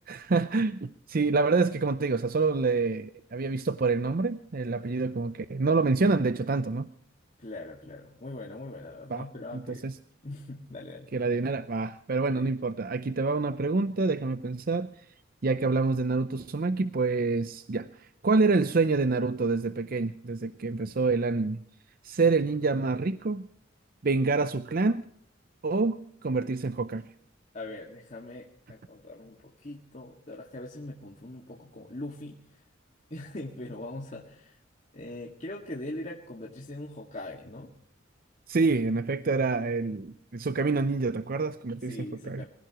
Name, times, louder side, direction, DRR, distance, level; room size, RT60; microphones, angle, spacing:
voice 1, 0.1-6.9 9.1-9.3 9.5-10.0 11.1-15.1 15.4-21.6 22.0-23.5 24.0-25.1 25.6-27.1 38.5-42.5, right 3 dB, 50° right, 12 dB, 0.6 m, -27 dB
voice 2, 7.4-9.9 10.2-11.1 12.3-12.5 27.5-32.4 33.1-34.6 34.9-37.7 41.9-42.5, left 1 dB, 40° left, -1 dB, 2.0 m, -41 dB
24.5 x 16.0 x 3.0 m, 0.63 s
head